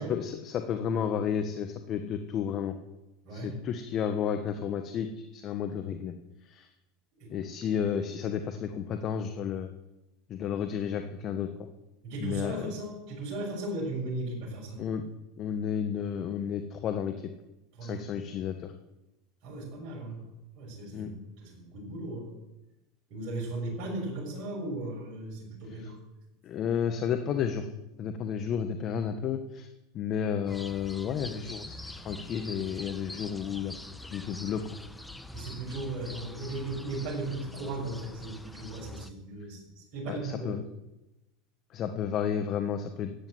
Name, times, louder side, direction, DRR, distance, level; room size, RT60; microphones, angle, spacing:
voice 1, 0.0-2.8 3.3-6.1 6.4-6.7 7.3-9.7 10.3-11.5 12.2-12.7 14.8-15.1 15.4-17.3 17.8-18.7 20.9-21.1 25.8-25.9 26.4-27.7 28.0-29.7 29.9-33.7 34.1-34.7 40.1-40.6 41.7-43.3, left 8 dB, 45° left, 7 dB, 1.3 m, -32 dB
voice 2, 3.2-3.6 7.1-7.3 12.0-14.8 17.7-18.2 19.4-20.2 20.5-22.3 23.1-26.0 35.3-40.5, right 2 dB, 50° right, -5 dB, 6.5 m, -37 dB
sound 1, 30.5-39.1, left 1 dB, 5° left, 1.1 m, -45 dB
13.5 x 9.8 x 8.0 m, 0.97 s
hypercardioid pair, 90°, 0 cm